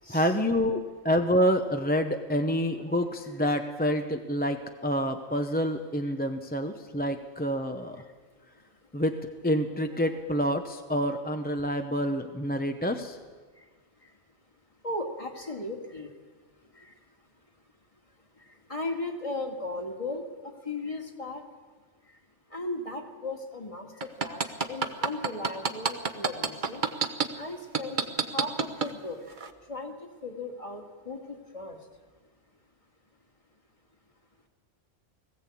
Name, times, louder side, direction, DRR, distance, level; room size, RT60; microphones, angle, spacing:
voice 1, 0.1-8.0 8.9-9.2 9.4-13.2, equal, 10° left, 5 dB, 0.7 m, -27 dB
voice 2, 14.8-16.1 16.7-16.9 18.7-21.4 22.5-26.8 27.4-28.0 28.3-29.2 29.7-31.8, left 2 dB, 30° left, 3 dB, 2.1 m, -36 dB
sound 1, 24.0-27.3 27.7-28.9 29.4-29.5, right 5 dB, 45° right, 1.2 m, -26 dB
20.0 x 15.5 x 8.5 m, 1.5 s
omnidirectional pair, 1.2 m